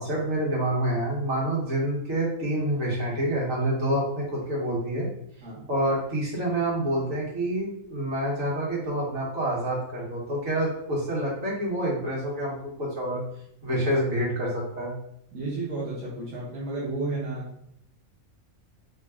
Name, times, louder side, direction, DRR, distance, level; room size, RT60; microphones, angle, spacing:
voice 1, 0.0-5.1 5.7-13.2 13.6-14.9, right 1 dB, 65° right, -6 dB, 1.7 m, -27 dB
voice 2, 15.3-17.5, right 2 dB, 85° right, -7 dB, 1.4 m, -32 dB
3.9 x 2.3 x 3.4 m, 0.72 s
omnidirectional pair, 1.5 m